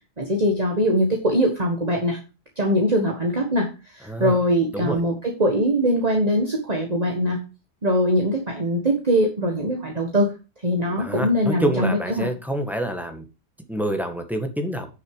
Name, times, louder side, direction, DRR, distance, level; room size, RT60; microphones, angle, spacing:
voice 1, 0.2-2.2 2.6-7.4 7.8-10.3 10.6-12.3, equal, 35° right, 1 dB, 1.7 m, -22 dB
voice 2, 10.9-13.2 13.7-14.9, equal, ahead, 4 dB, 1.7 m, -27 dB
9.6 x 6.8 x 4.8 m, 0.30 s
omnidirectional pair, 1.3 m